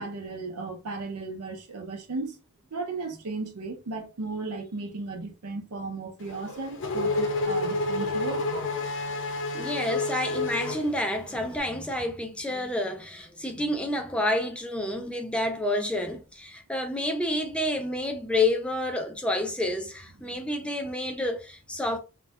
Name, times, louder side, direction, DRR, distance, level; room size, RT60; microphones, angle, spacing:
voice 1, 0.0-2.4 2.7-8.4 20.3-20.4, right 3 dB, 80° right, 0.6 m, -35 dB
Race car auto racing / Accelerating revving vroom, 6.2-11.5, left 2 dB, 60° left, 0.6 m, -30 dB
voice 2, 9.5-22.0, left 1 dB, 5° left, 0.3 m, -29 dB
2.6 x 2.2 x 2.2 m
head